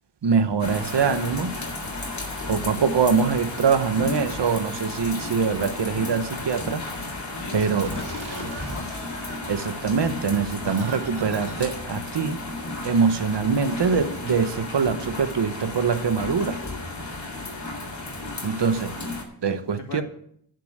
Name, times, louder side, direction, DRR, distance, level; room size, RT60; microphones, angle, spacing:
voice 1, 0.2-1.5 2.5-6.8 7.5-7.9 9.5-12.4 12.8-16.6 18.4-18.9 19.4-20.0, right 5 dB, 60° right, 10 dB, 1.1 m, -23 dB
sound 1, 0.6-19.2, left 2 dB, 35° left, 3.4 m, -33 dB
voice 2, 7.4-8.8 19.9-20.0, left 3 dB, 60° left, 1 dB, 2.7 m, -38 dB
sound 2, 7.8-12.9, right 2 dB, 80° right, 3.1 m, -42 dB
10.5 x 6.7 x 8.0 m, 0.67 s
wide cardioid pair, 105°, 47 cm